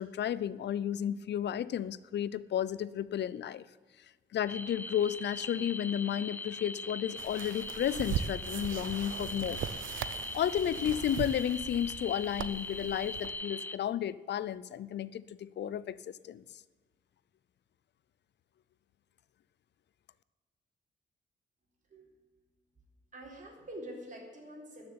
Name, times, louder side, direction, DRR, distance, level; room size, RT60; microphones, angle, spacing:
voice 1, 0.0-3.6 4.3-9.6 10.0-16.4, left 10 dB, 60° left, 18 dB, 0.5 m, -33 dB
sound 1, 4.5-13.8, left 2 dB, 10° left, 0.4 m, -41 dB
sound 2, 7.2-13.3, right 9 dB, 80° right, 0.6 m, -39 dB
voice 2, 23.1-24.9, right 1 dB, 40° right, 0 dB, 4.0 m, -46 dB
13.5 x 6.7 x 9.7 m, 1.4 s
wide cardioid pair, 140°, 20 cm